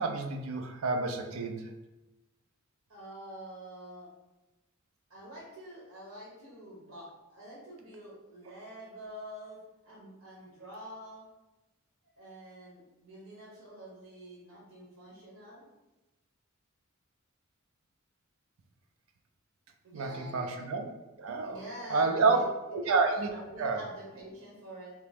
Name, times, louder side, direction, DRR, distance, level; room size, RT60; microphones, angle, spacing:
voice 1, 0.0-1.7 19.9-20.9 21.2-21.6 21.9-22.4 22.7-23.3 23.6-23.8, right 4 dB, 70° right, 5 dB, 0.4 m, -29 dB
voice 2, 2.9-4.1 5.1-9.6 9.8-11.2 12.2-15.7 19.8-20.6 21.4-22.9 23.3-24.9, right 1 dB, 85° right, -6 dB, 1.1 m, -47 dB
2.9 x 2.9 x 3.5 m, 1.1 s
head